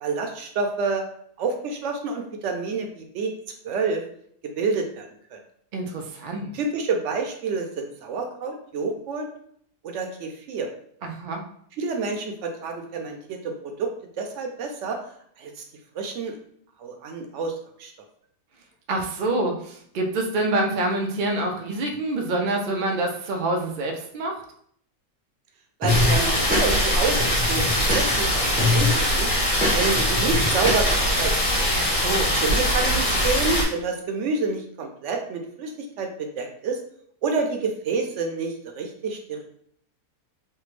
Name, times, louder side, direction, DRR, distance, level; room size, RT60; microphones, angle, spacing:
voice 1, 0.0-1.0 1.4-3.3 3.6-4.0 4.6-5.4 6.5-9.3 9.8-10.7 11.8-13.9 14.2-15.0 15.4-15.5 16.0-16.3 16.8-17.5 17.8-17.9 25.8-29.3 29.7-31.3 31.6-31.7 32.3-36.8 37.2-39.4, right 4 dB, 65° right, 3 dB, 0.8 m, -28 dB
voice 2, 5.7-6.5 11.0-11.4 18.9-24.4 32.0-32.4, right 2 dB, 85° right, 2 dB, 0.4 m, -26 dB
sound 1, 25.8-26.9 27.2-28.3 28.6-29.0 29.3-31.0, left 2 dB, 10° right, 0.4 m, -24 dB
sound 2, 25.9-33.6, equal, 60° left, 1.5 m, -22 dB
3.3 x 2.2 x 3.1 m, 0.64 s
omnidirectional pair, 1.5 m